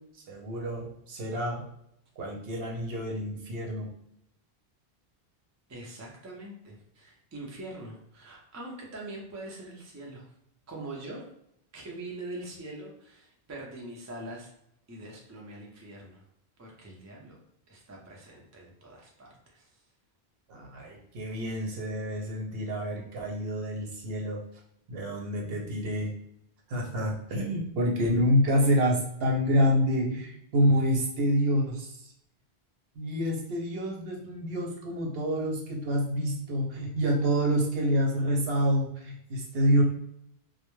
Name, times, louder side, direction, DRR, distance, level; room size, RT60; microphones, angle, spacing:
voice 1, 0.1-1.6 2.2-3.9 20.5-24.4 24.9-26.1 26.7-32.1 32.9-39.8, equal, 70° right, 0 dB, 0.8 m, -27 dB
voice 2, 5.7-10.3 10.7-11.3 11.7-14.5 14.9-16.2 16.6-17.4 17.7-19.7, right 2 dB, 30° right, -1 dB, 0.3 m, -43 dB
2.2 x 2.0 x 3.0 m, 0.74 s
omnidirectional pair, 1.1 m